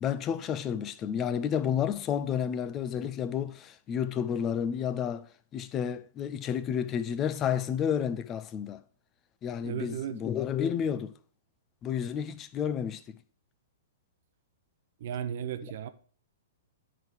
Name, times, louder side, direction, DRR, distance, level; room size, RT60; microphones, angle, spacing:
voice 1, 0.0-5.2 5.5-8.8 9.4-11.1 11.8-13.0 15.6-15.7, left 8 dB, 25° left, 0.6 m, -31 dB
voice 2, 9.6-10.2 15.0-15.9, right 9 dB, 55° right, 0.8 m, -35 dB
10.0 x 4.0 x 4.5 m
hypercardioid pair, 115°, 0 cm